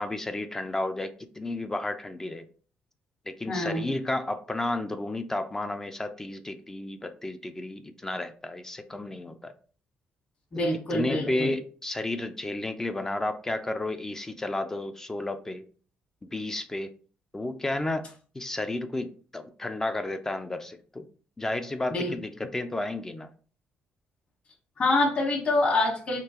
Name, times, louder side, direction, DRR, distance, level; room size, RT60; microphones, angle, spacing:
voice 1, 0.0-2.4 3.3-9.5 10.9-15.6 16.2-16.9 17.3-18.0 18.3-21.0 21.4-23.3, left 2 dB, 15° left, 9 dB, 0.3 m, -32 dB
voice 2, 3.5-3.8 10.5-11.5 21.9-22.1 24.8-26.2, left 2 dB, 35° left, -2 dB, 1.3 m, -26 dB
3.6 x 3.1 x 2.9 m, 0.41 s
cardioid pair, 115°, 3 cm